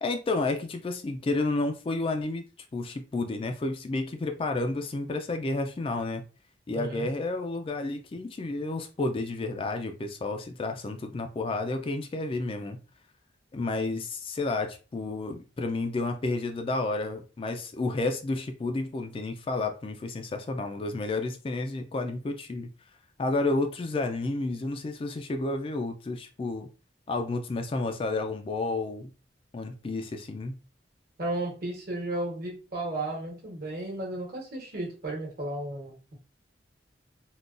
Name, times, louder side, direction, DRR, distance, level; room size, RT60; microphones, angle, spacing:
voice 1, 0.0-6.2 6.7-12.8 13.5-22.7 23.2-26.7 27.1-29.1 29.5-30.6, left 2 dB, 30° left, 0.3 m, -31 dB
voice 2, 6.7-7.1 31.2-36.1, right 1 dB, 55° right, 1.1 m, -34 dB
3.7 x 2.2 x 2.4 m
head